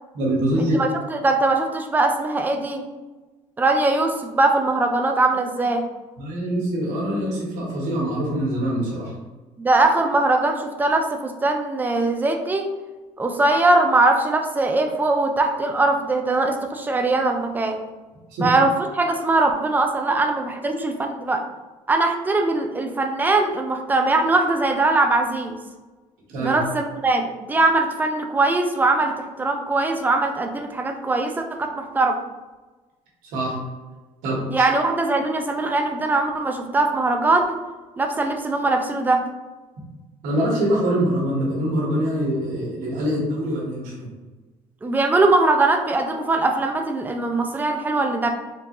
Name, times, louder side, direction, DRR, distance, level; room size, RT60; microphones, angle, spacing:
voice 1, 0.1-0.8 6.2-9.1 18.3-18.5 26.3-26.6 33.3-33.6 34.2-34.6 40.2-44.1, right 1 dB, 85° right, -3 dB, 1.2 m, -24 dB
voice 2, 0.8-2.9 3.6-5.9 9.6-12.7 13.2-17.8 18.4-21.4 21.9-25.6 26.4-32.2 34.5-37.6 38.0-39.3 44.8-48.3, right 2 dB, 15° right, 5 dB, 0.4 m, -21 dB
3.7 x 2.4 x 2.9 m, 1.2 s
cardioid pair, 120°, 13 cm